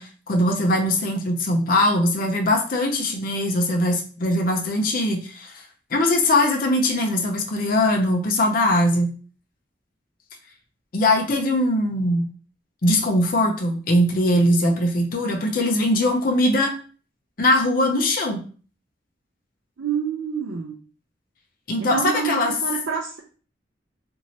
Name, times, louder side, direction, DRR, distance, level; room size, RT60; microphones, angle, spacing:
voice 1, 0.0-5.5 5.9-9.1 10.9-12.3 12.8-16.7 17.4-18.4 21.7-22.5, left 1 dB, 50° left, 1 dB, 0.6 m, -21 dB
voice 2, 19.8-20.7 21.8-23.2, right 6 dB, 80° right, -1 dB, 0.4 m, -27 dB
2.8 x 2.6 x 3.0 m, 0.40 s
head